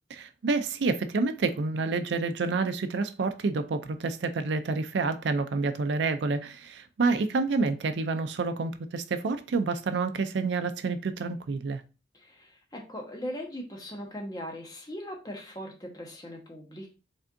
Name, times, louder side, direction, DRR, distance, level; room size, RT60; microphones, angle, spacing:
voice 1, 0.1-11.8, right 4 dB, 90° right, 0.4 m, -28 dB
voice 2, 12.1-16.9, equal, 25° left, 1.1 m, -39 dB
5.3 x 3.4 x 2.6 m
head